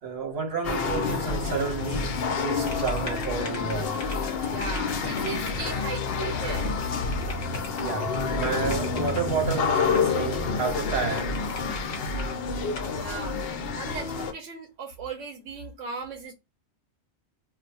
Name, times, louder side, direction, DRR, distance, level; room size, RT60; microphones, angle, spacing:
voice 1, 0.0-4.0 6.3-6.4 7.8-11.4, right 5 dB, 60° right, 1.1 m, -31 dB
sound 1, 0.6-14.3, left 4 dB, 60° left, 0.7 m, -28 dB
sound 2, 2.6-9.3 9.9-10.5 10.7-10.8 11.1-12.3 12.7-13.0, left 2 dB, 40° left, 1.1 m, -43 dB
voice 2, 4.5-6.7 12.0-12.1 12.9-16.3, right 5 dB, 85° right, 0.9 m, -37 dB
2.4 x 2.2 x 3.9 m
omnidirectional pair, 1.2 m